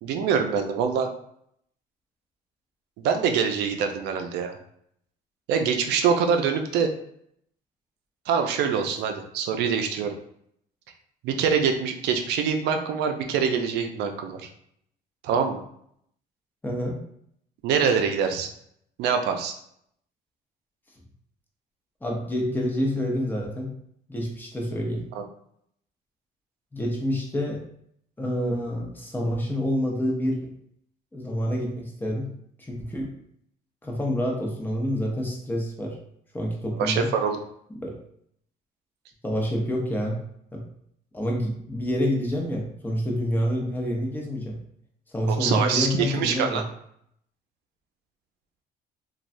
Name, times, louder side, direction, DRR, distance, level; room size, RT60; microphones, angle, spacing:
voice 1, 0.0-1.1 3.0-4.6 5.5-6.9 8.3-10.2 11.2-14.5 15.2-15.6 17.6-18.5 19.0-19.5 25.1-25.2 36.8-37.4 45.3-46.6, right 6 dB, 80° right, 5 dB, 0.5 m, -24 dB
voice 2, 16.6-17.0 22.0-23.7 24.1-25.0 26.7-27.6 28.2-30.5 31.1-32.3 32.6-33.1 33.8-36.0 36.3-37.1 37.8-38.0 39.2-40.2 40.5-40.6 41.1-44.6 45.1-46.6, equal, 10° left, -1 dB, 0.7 m, -27 dB
3.1 x 2.3 x 2.6 m, 0.70 s
cardioid pair, 110°, 17 cm